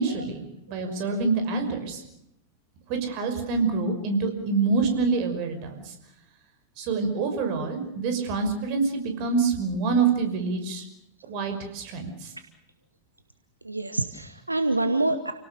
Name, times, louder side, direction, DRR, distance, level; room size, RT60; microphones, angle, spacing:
voice 1, 0.0-2.0 2.9-5.9 6.8-10.8 11.3-12.3, right 4 dB, 45° right, 6 dB, 5.9 m, -26 dB
voice 2, 13.6-15.3, right 2 dB, 85° right, 10 dB, 1.2 m, -26 dB
29.0 x 18.5 x 6.8 m, 0.79 s
figure-of-eight pair, 90°, 0 cm